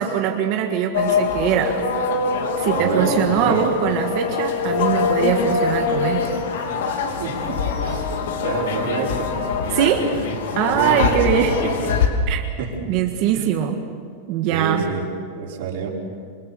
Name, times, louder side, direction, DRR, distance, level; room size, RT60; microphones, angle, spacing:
voice 1, 0.0-1.9 2.6-6.3 9.7-10.2 10.6-11.9 12.3-12.4 12.9-13.8 14.3-14.9, right 9 dB, 40° right, 3 dB, 1.6 m, -22 dB
sound 1, 0.9-12.1, left 5 dB, 85° left, 3.2 m, -23 dB
voice 2, 2.7-3.6 7.2-9.5 10.7-11.6 12.6-12.7 13.3-13.5 14.5-15.0 15.3-15.9, right 5 dB, 60° right, -2 dB, 5.6 m, -28 dB
28.0 x 23.5 x 7.0 m, 2.1 s
supercardioid pair, 175°, 0 cm